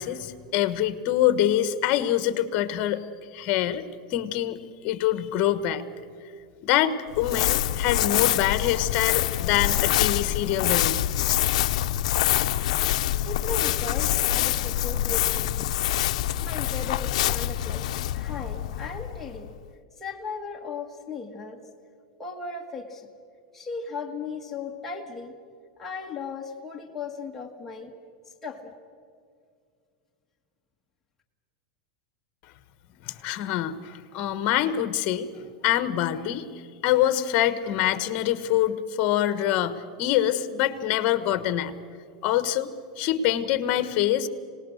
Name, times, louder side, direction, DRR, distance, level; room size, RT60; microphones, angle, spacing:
voice 1, 0.0-3.0 3.3-4.6 4.8-5.8 6.6-11.0 33.0-35.3 35.6-36.5 36.8-41.7 42.2-42.7 43.0-44.3, left 12 dB, 45° left, 13 dB, 1.3 m, -25 dB
Crumpling crinkling, 7.1-19.6, left 13 dB, 70° left, 0.6 m, -25 dB
voice 2, 13.2-15.7 16.4-17.9 18.1-19.5 20.0-21.6 22.2-23.1 23.5-25.3 25.8-27.9 28.4-28.7, left 4 dB, 10° left, -2 dB, 1.7 m, -36 dB
26.0 x 19.0 x 6.5 m, 2.3 s
supercardioid pair, 140°, 4 cm